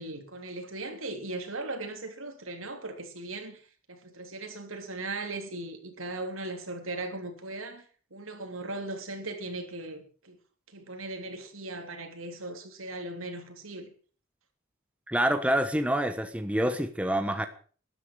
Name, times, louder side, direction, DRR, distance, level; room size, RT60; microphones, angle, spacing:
voice 1, 0.0-3.6 3.9-10.4 10.7-13.9, right 2 dB, 80° right, 3.4 m, -38 dB
voice 2, 15.1-17.5, right 1 dB, 5° right, 1.1 m, -27 dB
13.0 x 12.0 x 6.5 m
head